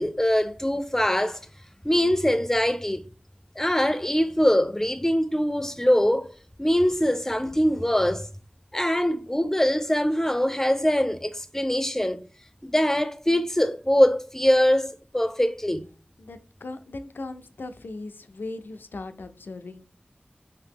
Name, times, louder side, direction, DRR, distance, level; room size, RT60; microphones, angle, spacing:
voice 1, 0.0-1.4 1.8-3.0 3.6-6.3 6.6-8.3 8.7-12.2 12.7-15.9, equal, 15° left, 0.4 m, -23 dB
voice 2, 16.2-19.8, left 2 dB, 85° left, 0.3 m, -38 dB
2.8 x 2.7 x 3.5 m
wide cardioid pair, 40°, 3 cm